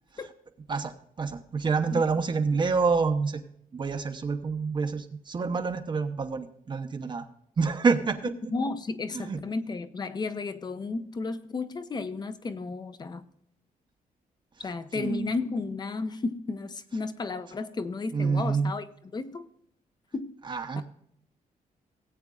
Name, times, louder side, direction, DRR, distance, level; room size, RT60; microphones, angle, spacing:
voice 1, 0.7-3.4 3.7-7.2 7.6-8.3 9.1-9.4 14.9-15.3 18.1-18.7 20.4-20.8, right 4 dB, 35° right, 6 dB, 0.8 m, -27 dB
voice 2, 8.5-13.2 14.6-18.9 19.1-19.5 20.1-20.4 20.8-20.9, left 3 dB, 30° left, 11 dB, 0.8 m, -33 dB
18.0 x 8.7 x 2.4 m, 0.69 s
wide cardioid pair, 165°, 15 cm